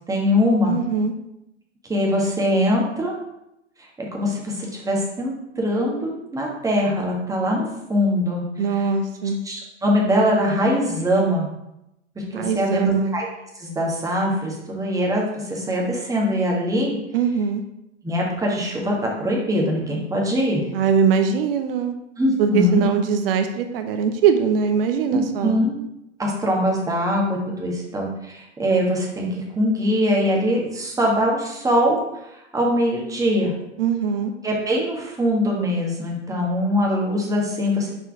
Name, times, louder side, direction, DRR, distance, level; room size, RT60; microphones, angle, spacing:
voice 1, 0.1-0.8 1.9-3.2 4.1-8.4 9.4-11.5 12.1-13.3 13.6-16.9 18.0-20.6 22.2-22.8 25.1-25.8 26.2-32.0 32.5-33.5 34.4-38.0, equal, 10° right, -2 dB, 1.6 m, -22 dB
voice 2, 0.6-1.1 8.6-9.4 12.3-13.2 17.1-17.6 20.7-21.9 22.4-25.6 33.8-34.3, right 6 dB, 55° right, 7 dB, 0.8 m, -21 dB
6.4 x 4.4 x 4.7 m, 0.86 s
figure-of-eight pair, 100°, 35 cm